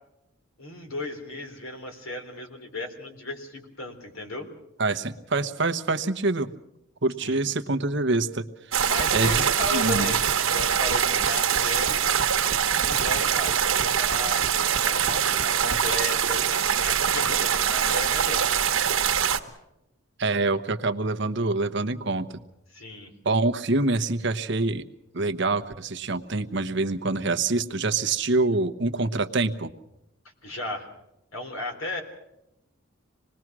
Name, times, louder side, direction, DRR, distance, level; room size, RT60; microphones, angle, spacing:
voice 1, 0.6-4.5 7.2-7.5 8.9-12.0 12.7-16.5 16.8-18.5 22.7-23.1 30.4-30.9 31.3-32.0, left 1 dB, 80° left, 4 dB, 3.8 m, -35 dB
voice 2, 4.8-6.5 7.0-10.1 20.2-22.3 23.2-24.8 25.1-29.7, right 3 dB, 60° right, 8 dB, 1.0 m, -26 dB
sound 1, 8.7-19.4, right 8 dB, 85° right, 1.4 m, -23 dB
26.0 x 20.0 x 6.2 m, 0.87 s
head